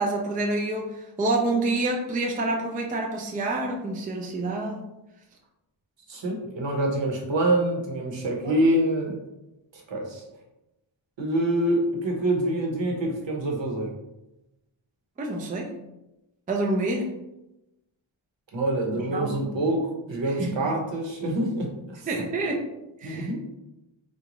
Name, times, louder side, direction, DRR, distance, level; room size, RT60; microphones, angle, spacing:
voice 1, 0.0-4.8 8.4-8.5 15.2-15.7 16.5-17.1 19.1-19.4 20.4-20.7 22.1-22.6 23.0-23.3, right 2 dB, 20° right, 0 dB, 0.3 m, -27 dB
voice 2, 6.1-9.2 9.7-10.2 11.2-13.9 18.5-22.1 23.0-23.4, right 1 dB, 65° right, 0 dB, 0.9 m, -26 dB
3.7 x 2.3 x 2.9 m, 0.95 s
wide cardioid pair, 130°, 47 cm